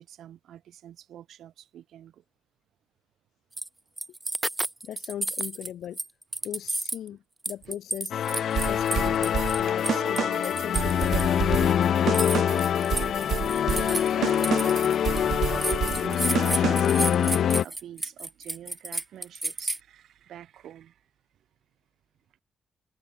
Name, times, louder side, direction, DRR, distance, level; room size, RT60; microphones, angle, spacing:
voice 1, 0.0-2.2 7.6-7.8 8.8-8.9 9.7-9.8 13.7-14.2 15.2-21.0, right 11 dB, 75° right, 4.6 m, -45 dB
sound 1, 3.6-3.7 4.0-5.7 6.0-7.1 7.4-11.2 12.1-15.2 15.6-19.8, right 2 dB, 10° right, 0.4 m, -31 dB
voice 2, 4.8-6.0 6.4-8.1 8.7-12.2 13.6-14.3, left 11 dB, 75° left, 2.1 m, -38 dB
sound 2, 8.1-17.6, left 9 dB, 55° left, 0.5 m, -25 dB
sound 3, 8.6-17.0, right 9 dB, 55° right, 1.1 m, -31 dB
wide cardioid pair, 180°, 0 cm